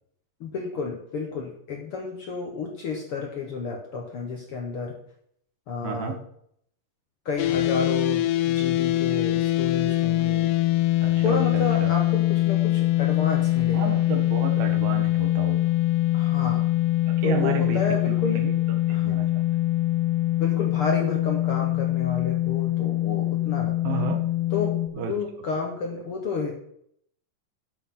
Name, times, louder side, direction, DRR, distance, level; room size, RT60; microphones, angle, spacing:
voice 1, 0.4-4.9 5.7-6.1 7.2-10.5 11.2-14.0 16.1-16.6 17.2-18.4 18.9-19.2 20.4-24.1 24.5-26.5, left 4 dB, 60° left, 1 dB, 1.5 m, -31 dB
voice 2, 5.8-6.2 11.0-11.9 13.7-15.7 17.1-17.8 18.1-18.5 18.9-19.4 23.8-24.2 24.9-25.1, right 8 dB, 90° right, 4 dB, 3.2 m, -32 dB
sound 1, 7.4-24.9, left 15 dB, 80° left, 2.2 m, -23 dB
12.0 x 8.0 x 4.2 m, 0.69 s
omnidirectional pair, 4.0 m